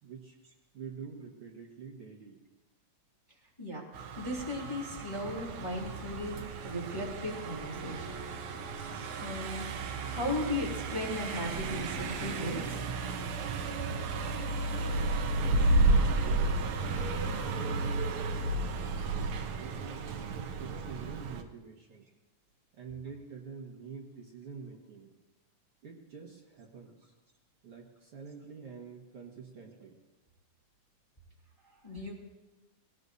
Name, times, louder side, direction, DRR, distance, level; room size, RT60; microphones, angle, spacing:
voice 1, 0.0-0.3 0.7-2.4 15.4-19.0 19.6-20.1 20.3-22.0 22.7-25.1 25.8-27.1 27.6-30.0, right 5 dB, 55° right, -2 dB, 2.2 m, -46 dB
Car passing by, 3.9-21.4, right 2 dB, 75° right, 2.3 m, -32 dB
voice 2, 4.2-8.1 8.8-9.6 10.1-12.8 31.8-32.1, left 1 dB, 10° left, -3 dB, 2.3 m, -36 dB
22.0 x 18.0 x 2.7 m, 1.1 s
omnidirectional pair, 3.3 m